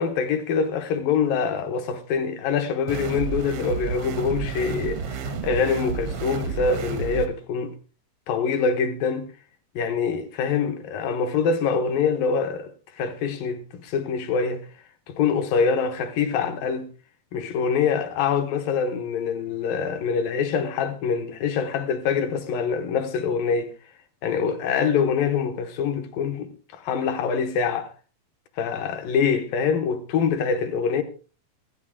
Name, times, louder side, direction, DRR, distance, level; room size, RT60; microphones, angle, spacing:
voice 1, 0.0-7.7 8.3-9.3 9.7-14.7 15.1-16.9 17.3-23.7 24.2-27.9 28.6-31.0, left 6 dB, 85° left, 3.0 m, -25 dB
sound 1, 2.9-7.3, right 5 dB, 80° right, 1.2 m, -30 dB
16.0 x 12.5 x 3.7 m
omnidirectional pair, 4.0 m